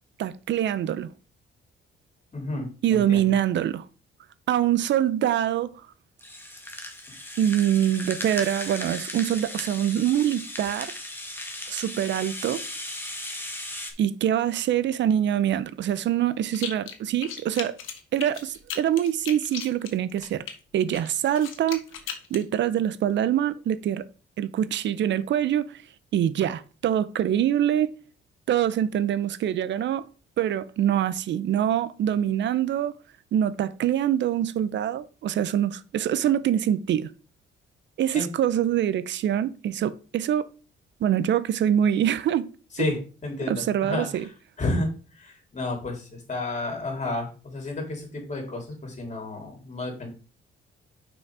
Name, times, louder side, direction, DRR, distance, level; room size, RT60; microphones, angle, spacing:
voice 1, 0.2-1.1 2.8-3.8 4.5-5.7 7.4-10.9 11.7-12.6 14.0-17.8 18.1-20.4 20.7-21.8 22.3-24.1 24.4-25.8 26.1-27.9 28.5-30.0 30.4-32.9 33.3-37.1 38.0-40.5 41.0-42.5 42.8-42.9 43.5-44.3, right 10 dB, 65° right, 0.6 m, -24 dB
voice 2, 2.3-3.3 38.1-38.3 42.7-44.3 44.6-44.9 45.2-50.1, left 2 dB, 35° left, 3.3 m, -31 dB
Rattle (instrument), 6.2-13.9, left 1 dB, 10° left, 1.6 m, -36 dB
sound 1, 16.5-17.0 17.2-20.5 20.9-22.4, left 8 dB, 85° left, 1.2 m, -36 dB
6.0 x 5.3 x 4.7 m
cardioid pair, 90°, 20 cm